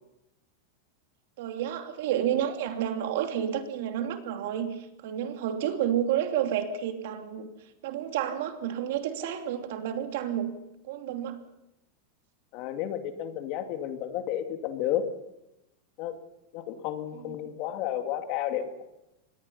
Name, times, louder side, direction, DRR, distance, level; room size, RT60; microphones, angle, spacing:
voice 1, 1.4-7.5 7.8-10.5 10.8-11.4 17.1-17.3, right 10 dB, 70° right, 5 dB, 2.9 m, -30 dB
voice 2, 12.5-15.1 16.0-16.1 16.5-18.7, left 11 dB, 50° left, 6 dB, 2.4 m, -32 dB
25.5 x 19.5 x 5.6 m, 0.88 s
supercardioid pair, 145°, 0 cm